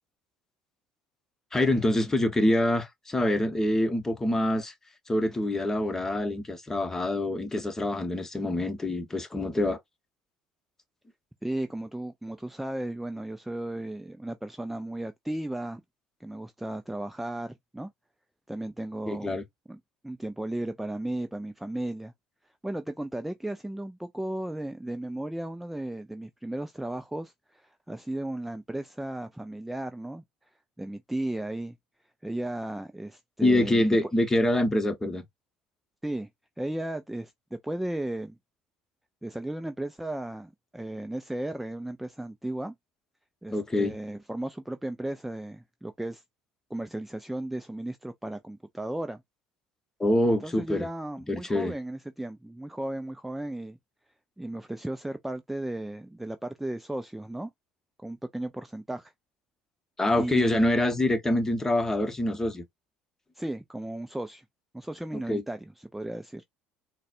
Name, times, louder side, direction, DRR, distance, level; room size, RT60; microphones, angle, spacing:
voice 1, 1.5-4.7 5.1-9.8 19.1-19.4 33.4-35.2 43.5-43.9 50.0-50.9 51.3-51.7 60.0-62.6 65.1-65.4, left 1 dB, 15° left, 0.9 m, -25 dB
voice 2, 11.4-15.8 16.2-17.9 18.5-19.4 19.7-19.8 20.0-22.1 22.6-30.2 30.8-31.8 32.2-34.1 36.0-36.3 36.6-38.4 39.2-42.7 43.4-46.2 46.7-49.2 50.3-53.8 54.4-57.5 58.0-59.1 60.2-60.6 63.4-64.4 64.7-66.4, right 1 dB, 5° right, 0.4 m, -35 dB
4.0 x 2.1 x 2.4 m
supercardioid pair, 85°, 3 cm